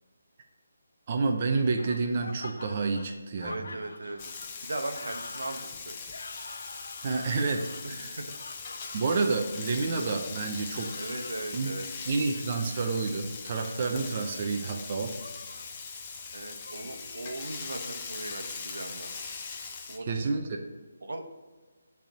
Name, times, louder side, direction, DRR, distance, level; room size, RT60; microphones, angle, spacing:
voice 1, 1.1-3.5 7.0-8.1 8.9-10.9 11.5-11.7 12.1-15.2 15.5-15.6 20.1-20.6, right 4 dB, 35° right, 3 dB, 0.6 m, -29 dB
sound 1, 1.8-9.6 10.6-11.5 12.2-13.0 13.8-14.5 15.2-15.7 16.6-17.8, left 2 dB, 80° left, 0.6 m, -46 dB
voice 2, 3.4-4.2 4.6-6.0 7.8-8.3 11.0-11.9 16.3-19.1 19.9-20.3 21.0-21.3, right 2 dB, 85° right, 5 dB, 1.0 m, -38 dB
Frying (food), 4.2-20.0, left 5 dB, 25° left, 0.6 m, -41 dB
7.5 x 3.5 x 5.9 m, 1.4 s
hypercardioid pair, 165°, 0 cm